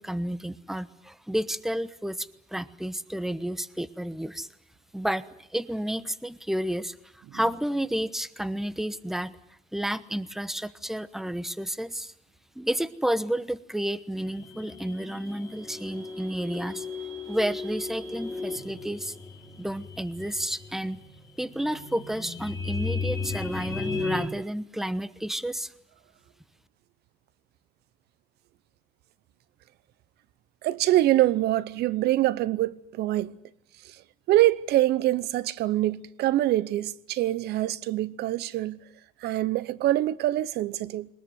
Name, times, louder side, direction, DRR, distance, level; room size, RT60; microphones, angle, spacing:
voice 1, 0.0-4.5 4.9-9.4 9.7-12.1 12.6-16.8 17.3-19.2 19.6-21.0 21.4-25.7, right 1 dB, ahead, 1.1 m, -31 dB
sound 1, 14.2-24.3, left 4 dB, 15° left, 5.2 m, -35 dB
voice 2, 30.6-33.3 34.3-38.8 39.2-41.1, right 15 dB, 75° right, 0.9 m, -24 dB
21.5 x 20.5 x 9.4 m
cardioid pair, 110°, 17 cm